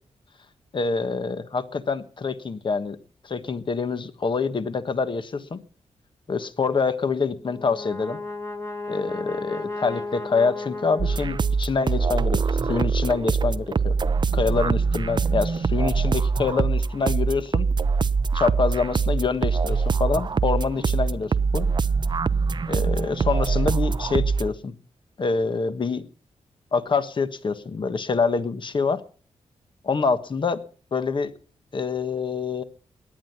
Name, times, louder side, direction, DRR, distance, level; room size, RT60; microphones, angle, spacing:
voice 1, 0.7-3.0 3.2-5.6 6.3-8.2 8.9-13.9 14.3-17.7 18.3-21.7 22.7-24.7 25.2-26.0 26.7-29.0 29.8-30.6 30.9-31.3 31.7-32.6, left 4 dB, 45° left, 11 dB, 1.3 m, -26 dB
Brass instrument, 7.4-11.8, left 3 dB, 25° left, 2.2 m, -34 dB
sound 1, 11.0-24.5, right 5 dB, 40° right, 0.6 m, -23 dB
17.5 x 11.0 x 5.8 m, 0.41 s
wide cardioid pair, 105°, 12 cm